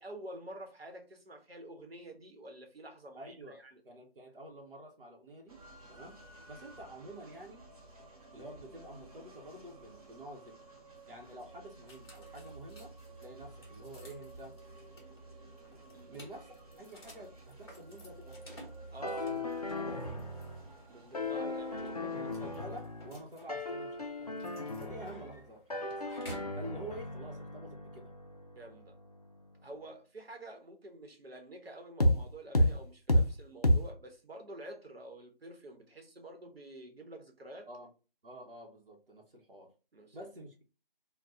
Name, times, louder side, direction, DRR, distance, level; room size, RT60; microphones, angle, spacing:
voice 1, 0.0-3.8 15.9-16.2 18.9-19.3 20.9-22.1 28.5-28.9 29.6-37.7 39.9-40.2, right 1 dB, 90° right, 1.0 m, -48 dB
voice 2, 3.2-3.6 3.8-5.6 5.9-6.2 6.5-7.6 8.3-10.6 11.1-12.9 13.2-14.6 16.1-18.7 19.0-19.4 19.8-20.3 21.3-26.1 26.5-28.1 37.7-37.9 38.2-39.7 40.1-40.6, right 1 dB, 65° right, 0.9 m, -49 dB
sound 1, 5.5-22.7, right 2 dB, 40° right, 0.8 m, -53 dB
sound 2, 11.9-26.6, equal, 25° left, 1.0 m, -55 dB
sound 3, 19.0-20.7 21.1-23.2 23.5-25.4 25.7-29.4 32.0-32.2 32.5-32.7 33.1-33.3 33.6-33.8, left 1 dB, 40° left, 0.4 m, -33 dB
2.7 x 2.2 x 3.5 m
figure-of-eight pair, 165°, 29 cm